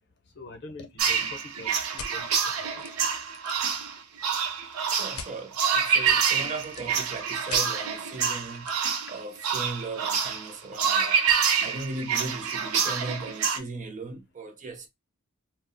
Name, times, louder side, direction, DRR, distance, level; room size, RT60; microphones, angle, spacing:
voice 1, 0.3-2.9 11.0-11.2, left 2 dB, 50° left, 0.6 m, -45 dB
sound 1, 1.0-13.6, right 6 dB, 75° right, 0.6 m, -27 dB
sound 2, 2.0-2.1 2.8-2.9 3.2-3.7 5.1-5.3 6.2-6.9 7.5-7.6 8.6-8.7, left 6 dB, 90° left, 0.5 m, -41 dB
voice 2, 4.9-8.7 9.1-11.2 11.6-14.9, right 3 dB, 35° right, 0.6 m, -37 dB
2.3 x 2.0 x 3.7 m
head